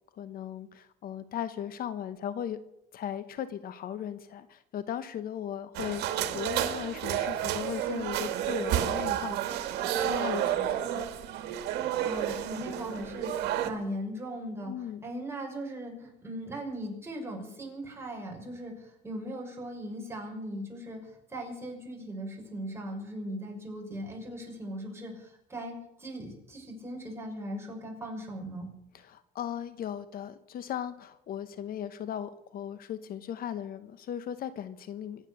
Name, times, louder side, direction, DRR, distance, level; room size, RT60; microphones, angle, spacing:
voice 1, 0.1-2.6 2.9-9.4 10.0-11.1 14.6-15.1 29.0-35.3, left 9 dB, 60° left, 13 dB, 1.0 m, -37 dB
sound 1, 5.7-13.7, right 10 dB, 80° right, 1.8 m, -31 dB
voice 2, 12.0-14.7 15.0-28.7, equal, 15° right, 0 dB, 6.0 m, -39 dB
24.5 x 9.0 x 6.5 m, 0.82 s
cardioid pair, 110°, 17 cm